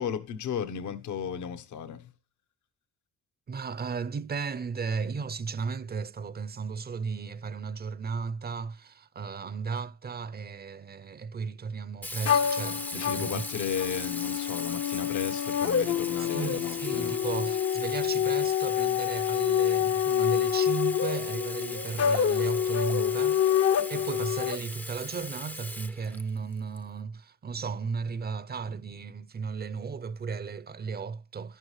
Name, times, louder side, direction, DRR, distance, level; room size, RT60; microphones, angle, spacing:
voice 1, 0.0-2.0 12.9-17.1, left 7 dB, 75° left, 1.1 m, -35 dB
voice 2, 3.5-13.4 16.2-23.4 23.9-31.6, right 5 dB, 35° right, 0.6 m, -35 dB
Sink (filling or washing), 12.0-26.8, left 1 dB, 5° left, 0.5 m, -40 dB
sound 1, 12.2-24.6, left 9 dB, 55° left, 0.7 m, -27 dB
12.0 x 11.5 x 3.2 m
cardioid pair, 90°, 30 cm